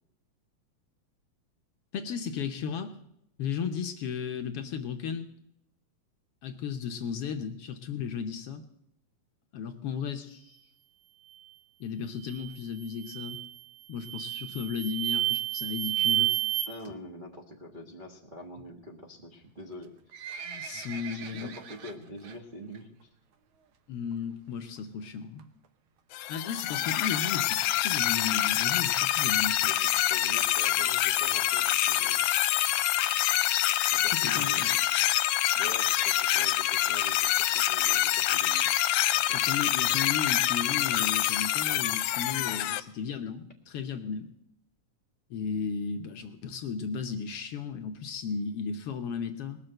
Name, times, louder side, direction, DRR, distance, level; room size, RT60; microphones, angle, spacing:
voice 1, 1.9-3.0 3.4-5.3 6.4-8.6 9.5-10.6 11.8-13.4 13.9-16.3 20.5-21.5 23.9-25.5 26.3-29.7 34.1-34.8 39.3-44.3 45.3-49.6, left 6 dB, 65° left, 6 dB, 1.6 m, -35 dB
sound 1, 12.2-12.5 13.0-13.5 14.0-16.7, right 13 dB, 80° right, 2.7 m, -30 dB
voice 2, 16.7-19.9 20.7-20.9 21.1-23.1 29.6-32.2 33.9-34.8 35.5-38.7 39.1-39.3, left 1 dB, 40° right, -2 dB, 0.7 m, -44 dB
Livestock farm animals working animals, 19.7-22.4 22.7-23.0 23.3-23.4 24.1-24.2 24.5-24.6 24.8-24.9 25.4-25.7 26.2-26.3 26.6-26.7 26.8-26.9 27.1-27.2 27.7-27.8 28.3-28.4 28.8-28.9, right 6 dB, 60° right, 1.6 m, -43 dB
sound 2, 26.1-42.8, left 14 dB, 85° left, 2.0 m, -26 dB
20.0 x 6.8 x 7.7 m, 0.79 s
omnidirectional pair, 3.3 m